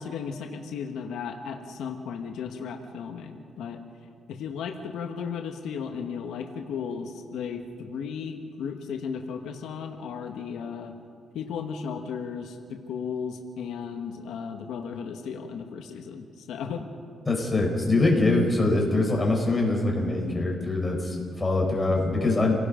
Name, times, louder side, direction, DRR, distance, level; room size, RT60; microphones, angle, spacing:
voice 1, 0.0-3.8 4.3-10.9 11.3-16.8, left 6 dB, 90° left, 4 dB, 1.5 m, -35 dB
voice 2, 17.3-22.6, left 2 dB, 15° left, -1 dB, 4.8 m, -23 dB
29.0 x 18.0 x 5.2 m, 2.3 s
cardioid pair, 130°, 0 cm